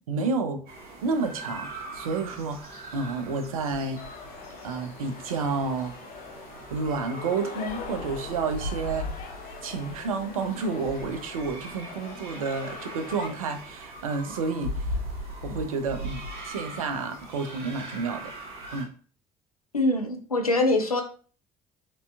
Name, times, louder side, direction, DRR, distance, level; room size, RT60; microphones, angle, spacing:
voice 1, 0.1-0.7 1.0-2.6 2.9-4.0 4.6-6.0 6.7-9.1 9.6-14.9 15.4-18.2 18.7-18.9, right 4 dB, 75° right, 8 dB, 0.6 m, -30 dB
sound 1, 0.7-18.8, equal, 55° right, 1.5 m, -39 dB
sound 2, 4.0-13.3, left 6 dB, 50° left, 0.7 m, -43 dB
voice 2, 19.7-21.0, left 2 dB, 90° left, 4 dB, 0.5 m, -23 dB
4.3 x 4.0 x 2.2 m, 0.40 s
figure-of-eight pair, 50°, 18 cm